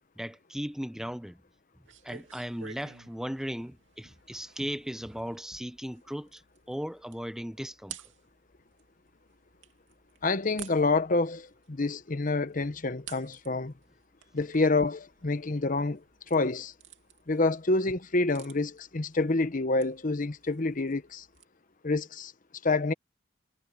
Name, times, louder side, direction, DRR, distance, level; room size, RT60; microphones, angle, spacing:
voice 1, 0.2-1.4 2.0-6.4 6.7-8.0, equal, 5° right, 0.7 m, -37 dB
sound 1, 1.8-21.4, right 8 dB, 75° right, 2.6 m, -53 dB
voice 2, 10.2-13.7 14.3-16.0 16.3-16.7 17.3-21.2 21.8-22.3 22.6-22.9, left 3 dB, 45° left, 0.9 m, -27 dB
head